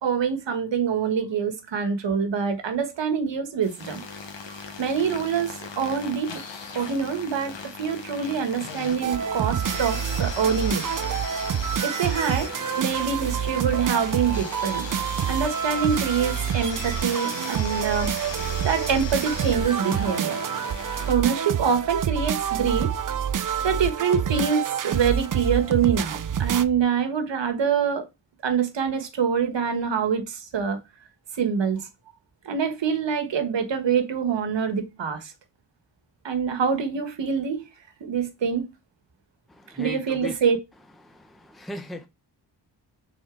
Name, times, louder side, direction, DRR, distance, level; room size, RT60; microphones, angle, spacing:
voice 1, 0.0-4.0 4.5-6.3 6.7-10.8 11.8-12.5 12.8-14.8 15.3-18.1 18.6-20.4 21.1-22.9 23.6-28.1 28.4-30.8 31.4-31.9 32.4-35.3 36.2-37.6 38.0-38.7 39.8-40.6, right 6 dB, 75° right, 1.4 m, -25 dB
sound 1, 3.6-21.1, left 5 dB, 80° left, 1.3 m, -38 dB
sound 2, 9.0-26.6, right 8 dB, 45° right, 0.6 m, -27 dB
voice 2, 39.7-40.3 41.1-42.1, left 1 dB, ahead, 0.7 m, -37 dB
6.3 x 4.2 x 3.8 m
wide cardioid pair, 95°, 44 cm